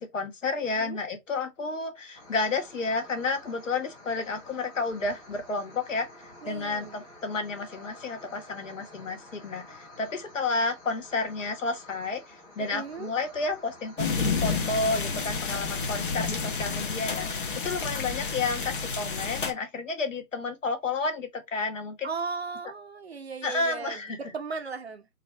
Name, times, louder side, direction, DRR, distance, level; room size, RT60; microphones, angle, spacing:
voice 1, 0.1-22.1 23.4-24.2, left 3 dB, 55° left, 1.5 m, -31 dB
sound 1, 2.1-18.3, left 1 dB, 10° left, 1.2 m, -50 dB
voice 2, 6.4-7.0 12.6-13.1 22.0-25.1, right 5 dB, 45° right, 0.7 m, -37 dB
sound 2, 14.0-19.5, left 5 dB, 35° left, 0.9 m, -30 dB
3.9 x 2.6 x 4.3 m
figure-of-eight pair, 155°, 45 cm